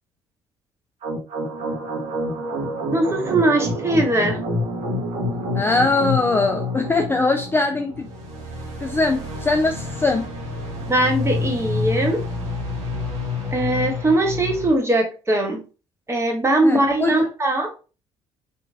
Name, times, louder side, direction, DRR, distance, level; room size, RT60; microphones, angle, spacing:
sound 1, 1.0-14.7, left 2 dB, 50° right, 0.9 m, -28 dB
voice 1, 2.9-4.4 10.9-12.2 13.5-15.6 16.1-17.7, right 1 dB, 20° right, 3 dB, 0.9 m, -20 dB
voice 2, 5.5-8.1 8.8-10.2 16.6-17.2, left 3 dB, 15° left, 4 dB, 0.4 m, -21 dB
3.0 x 2.5 x 2.4 m, 0.34 s
figure-of-eight pair, 50°, 15 cm